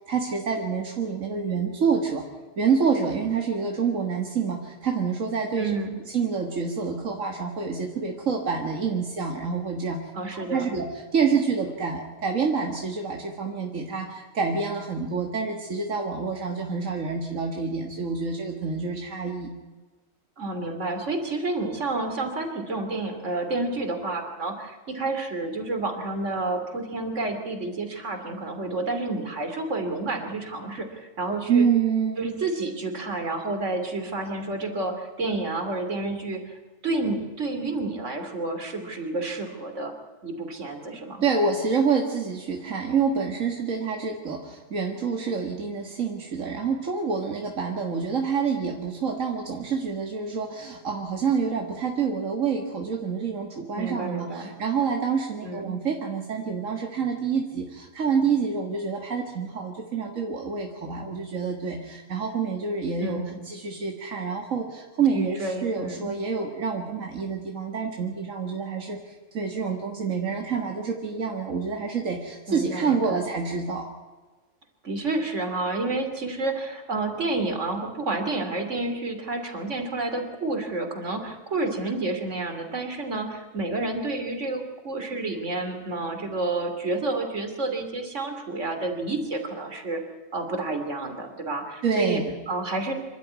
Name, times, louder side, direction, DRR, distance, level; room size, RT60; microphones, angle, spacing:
voice 1, 0.1-2.2 2.6-5.7 6.1-10.0 10.3-19.5 31.5-32.3 41.2-73.9 91.8-92.2, right 5 dB, 90° right, 2 dB, 2.1 m, -27 dB
voice 2, 5.6-6.0 10.1-10.7 20.4-31.7 32.2-39.9 40.2-41.2 53.7-54.5 55.4-55.8 63.0-63.4 65.1-66.1 72.5-73.2 74.8-90.0 90.3-92.9, right 2 dB, 70° right, 5 dB, 3.2 m, -30 dB
26.0 x 12.5 x 9.4 m, 1.3 s
omnidirectional pair, 1.3 m